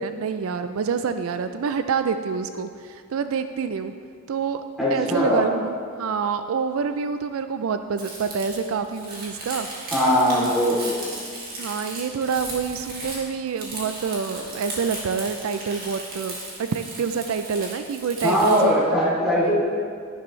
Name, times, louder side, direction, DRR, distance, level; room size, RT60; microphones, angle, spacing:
voice 1, 0.0-3.9 4.3-4.6 4.9-9.7 10.3-10.5 11.6-18.8 19.2-19.5, right 6 dB, 70° right, 9 dB, 0.4 m, -27 dB
voice 2, 4.8-5.5 9.9-11.0 18.2-19.6, equal, ahead, -9 dB, 2.9 m, -20 dB
Crumpling crinkling, 8.0-18.6, right 2 dB, 40° right, 2.0 m, -36 dB
11.0 x 10.5 x 3.2 m, 2.2 s
head